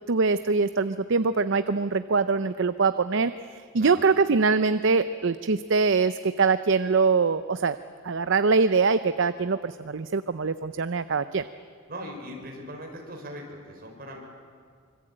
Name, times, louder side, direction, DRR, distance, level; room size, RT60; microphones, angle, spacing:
voice 1, 0.1-7.8 8.0-11.4, right 4 dB, 65° right, 12 dB, 0.7 m, -23 dB
voice 2, 11.9-14.2, equal, 50° right, 1 dB, 5.9 m, -39 dB
25.5 x 25.0 x 8.8 m, 2.1 s
head